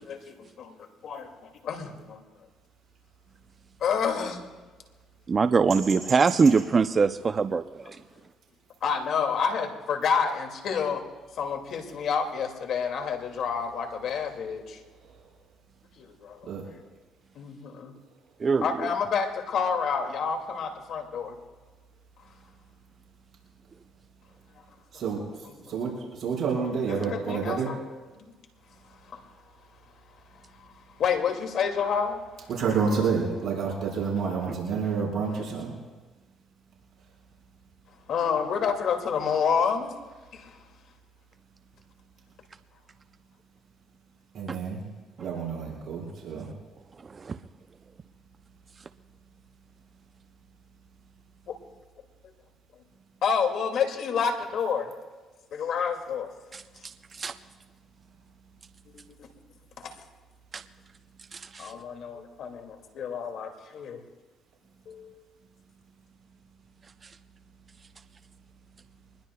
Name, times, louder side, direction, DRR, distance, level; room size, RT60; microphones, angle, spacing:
voice 1, 0.0-1.4 1.6-2.2 3.8-4.4 8.8-11.0 11.3-14.8 16.0-16.8 17.4-18.0 18.6-21.4 24.9-25.9 26.9-27.8 28.2-28.3 29.0-29.2 30.4-32.5 34.8-34.9 35.3-35.4 38.1-39.9 40.3-40.6 51.5-51.6 53.2-54.9 55.5-56.3 58.9-59.3 59.8-59.9 61.6-64.0 64.9-65.2, left 6 dB, 65° left, 4 dB, 2.3 m, -29 dB
voice 2, 5.3-8.0 18.4-18.9 34.5-34.8 44.5-44.6 45.2-45.3 47.0-47.4 56.5-57.3 60.5-60.6 61.3-61.7 67.0-67.1, right 5 dB, 40° right, 11 dB, 0.5 m, -24 dB
voice 3, 26.2-27.7 32.6-35.7 44.3-44.8 45.2-46.5, right 5 dB, 60° right, -3 dB, 5.1 m, -28 dB
24.5 x 20.5 x 2.3 m, 1.3 s
supercardioid pair, 70°, 0 cm